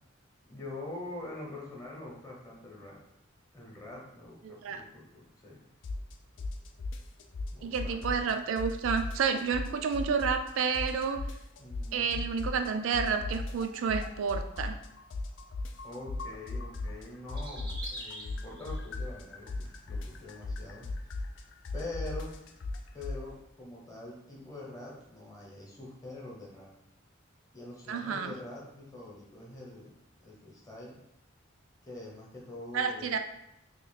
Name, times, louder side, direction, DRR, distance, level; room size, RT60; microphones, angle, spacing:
voice 1, 0.5-3.0 3.5-5.6 7.5-8.3 11.6-12.2 15.8-20.9 21.7-22.4 22.9-26.7 27.5-29.9 30.2-31.0 31.8-33.2, left 2 dB, 15° left, -3 dB, 0.9 m, -44 dB
voice 2, 4.4-4.8 7.6-11.2 11.9-14.8 27.9-28.3 32.7-33.2, right 6 dB, 80° right, 7 dB, 0.4 m, -30 dB
sound 1, 5.8-6.1 6.4-8.3 8.6-10.5 10.7-12.7 12.9-17.0 17.3-23.2, left 2 dB, 65° left, 0.4 m, -36 dB
sound 2, 17.3-19.1 19.5-20.1 20.4-20.5 21.4-21.5 21.7-21.8 22.8-22.9, right 1 dB, 20° right, 0.6 m, -44 dB
3.0 x 2.4 x 4.0 m, 0.82 s
head